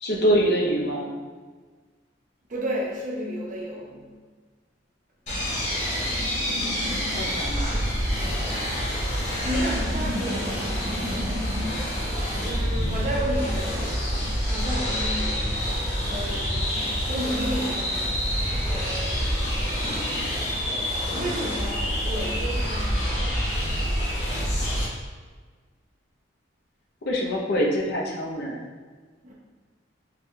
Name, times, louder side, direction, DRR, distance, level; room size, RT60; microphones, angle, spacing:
voice 1, 0.0-1.2 7.1-7.7 27.0-28.6, equal, 60° left, -1 dB, 0.7 m, -25 dB
voice 2, 2.5-4.1 9.4-11.7 12.2-14.0 14.5-18.1 18.7-19.5 21.1-23.5 29.2-29.3, equal, 45° right, -3 dB, 0.8 m, -33 dB
sound 1, 5.3-24.8, equal, 40° left, 1.3 m, -27 dB
4.0 x 3.1 x 2.7 m, 1.5 s
head